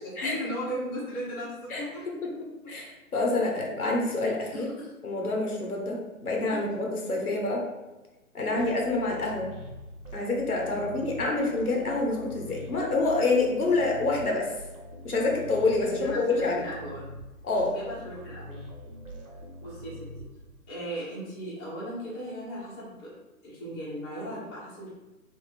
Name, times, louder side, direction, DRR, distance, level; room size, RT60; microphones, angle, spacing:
voice 1, 0.0-2.0 2.6-2.7 4.5-4.9 6.5-6.8 8.4-8.7 10.7-11.5 15.9-17.1 17.7-18.6 19.6-20.1 20.7-23.1 23.4-24.9, equal, 15° left, -8 dB, 0.8 m, -37 dB
voice 2, 2.7-4.7 5.0-7.6 8.3-9.5 10.1-14.5 15.0-16.6 17.4-17.7, left 3 dB, 80° left, 0 dB, 1.0 m, -27 dB
sound 1, 8.6-20.8, equal, 60° right, 1.0 m, -44 dB
3.5 x 2.0 x 4.2 m, 1.1 s
figure-of-eight pair, 135°, 43 cm